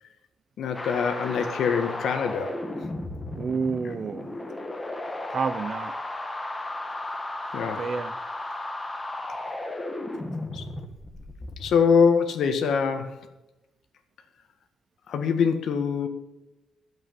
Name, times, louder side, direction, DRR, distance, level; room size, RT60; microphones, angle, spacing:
voice 1, 0.6-2.6 7.5-7.8 10.5-10.7 11.6-13.3 15.1-16.1, left 6 dB, 60° left, 1.6 m, -24 dB
sound 1, 0.7-11.8, left 2 dB, 15° left, 1.3 m, -34 dB
voice 2, 3.3-4.3 5.3-6.0 7.8-8.1, right 5 dB, 35° right, 0.5 m, -29 dB
12.5 x 7.9 x 7.6 m
cardioid pair, 165°, 0 cm